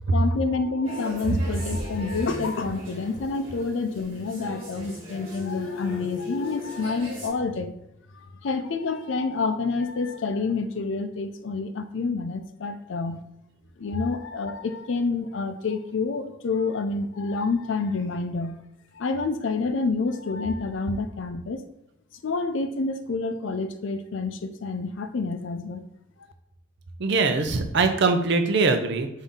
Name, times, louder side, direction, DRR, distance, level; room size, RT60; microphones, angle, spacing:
voice 1, 0.1-7.7 8.1-13.2 13.8-18.6 18.9-21.6 22.2-25.8, left 4 dB, 70° left, 9 dB, 0.5 m, -28 dB
sound 1, 0.8-7.3, left 2 dB, 30° right, 1.5 m, -38 dB
voice 2, 27.0-29.1, right 3 dB, 60° right, 7 dB, 0.6 m, -22 dB
5.3 x 2.7 x 3.6 m, 0.79 s
head